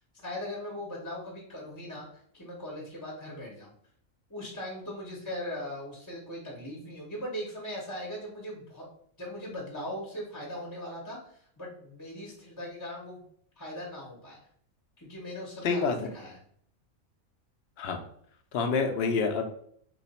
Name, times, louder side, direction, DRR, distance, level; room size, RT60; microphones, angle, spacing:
voice 1, 0.2-3.7 4.3-8.9 9.2-13.2 13.6-14.4 15.0-16.4, left 1 dB, 20° left, -3 dB, 0.6 m, -39 dB
voice 2, 15.6-16.0 17.8-18.0 18.5-19.4, left 5 dB, 65° left, 4 dB, 0.6 m, -27 dB
3.0 x 2.4 x 4.1 m, 0.63 s
omnidirectional pair, 1.4 m